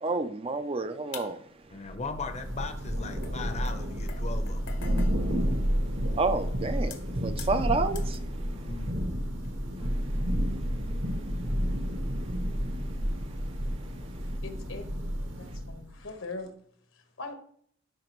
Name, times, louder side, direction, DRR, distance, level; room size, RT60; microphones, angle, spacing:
voice 1, 0.0-1.5 6.1-8.3 10.5-10.6 11.1-11.2 12.8-12.9 13.6-13.9, right 3 dB, 25° right, 0.5 m, -30 dB
sound 1, 1.1-1.7 2.6-2.7 3.2-6.2 6.7-8.3 8.8-9.0 9.4-9.5 10.5-11.2 11.5-11.8 12.5-12.6, left 7 dB, 60° left, 1.0 m, -47 dB
voice 2, 1.7-4.7 8.6-9.1, left 4 dB, 35° left, 0.7 m, -38 dB
Thunder / Rain, 1.9-16.0, equal, 65° right, 1.3 m, -30 dB
voice 3, 14.2-14.8 15.4-16.5 16.9-17.3, left 3 dB, 80° left, 1.4 m, -41 dB
12.5 x 5.1 x 3.1 m
head